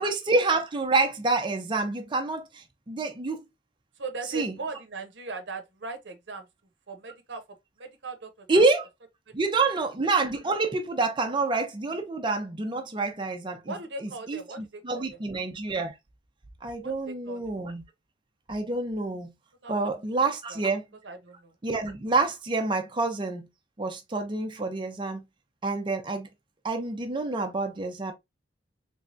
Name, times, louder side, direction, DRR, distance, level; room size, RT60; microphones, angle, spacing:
voice 1, 0.0-3.4 4.3-4.6 8.5-8.8 9.3-16.0 16.6-17.8 18.5-19.3 19.7-20.8 21.6-23.5 23.8-25.2 25.6-26.3 26.6-28.1, right 3 dB, 30° right, 0.5 m, -27 dB
voice 2, 4.0-6.5 6.9-7.4 7.8-8.6 9.3-9.9 13.7-15.2 16.8-17.4 19.6-19.9 20.5-20.6 21.0-21.5, right 3 dB, 85° right, 0.8 m, -39 dB
3.3 x 3.3 x 2.5 m
head